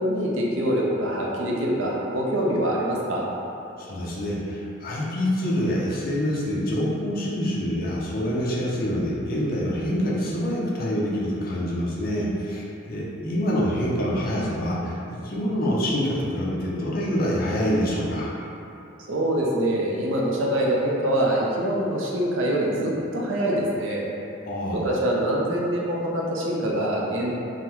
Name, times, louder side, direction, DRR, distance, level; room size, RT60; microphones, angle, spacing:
voice 1, 0.0-3.3 19.1-24.0 24.7-27.3, right 1 dB, 70° right, -3 dB, 0.5 m, -24 dB
voice 2, 3.8-18.3 24.4-24.9, equal, 45° left, -5 dB, 0.5 m, -26 dB
3.6 x 2.1 x 2.9 m, 2.7 s
head